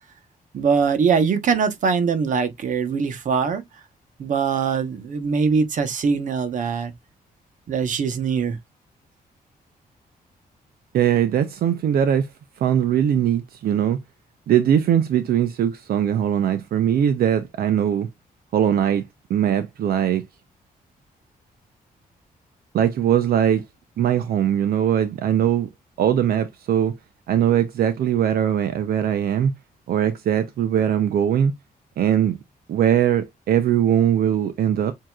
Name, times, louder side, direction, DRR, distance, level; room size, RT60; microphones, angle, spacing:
voice 1, 0.5-3.6 4.2-6.9 7.7-8.6, right 5 dB, 55° right, 1.1 m, -22 dB
voice 2, 10.9-12.3 12.6-14.0 14.5-18.1 18.5-19.0 19.3-20.2 22.7-23.6 24.0-25.7 26.0-26.9 27.3-29.5 29.9-31.5 32.0-32.4 32.7-34.9, right 9 dB, 80° right, 0.7 m, -20 dB
7.6 x 2.8 x 2.4 m
wide cardioid pair, 160°, 16 cm